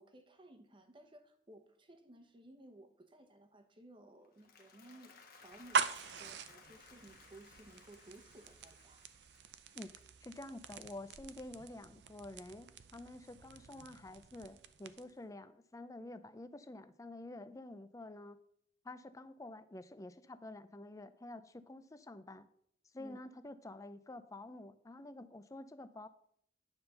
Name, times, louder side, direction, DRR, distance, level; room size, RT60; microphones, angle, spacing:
voice 1, 0.0-5.2 5.4-9.1 23.0-23.2, right 1 dB, 30° right, 6 dB, 1.0 m, -58 dB
Applause, 4.2-10.6, left 5 dB, 55° left, 1.3 m, -61 dB
sound 1, 5.5-15.2, right 6 dB, 70° right, 0.6 m, -43 dB
voice 2, 10.2-18.4 18.8-22.5 22.9-26.1, left 2 dB, 20° left, 12 dB, 0.5 m, -49 dB
9.7 x 4.3 x 6.7 m, 0.66 s
head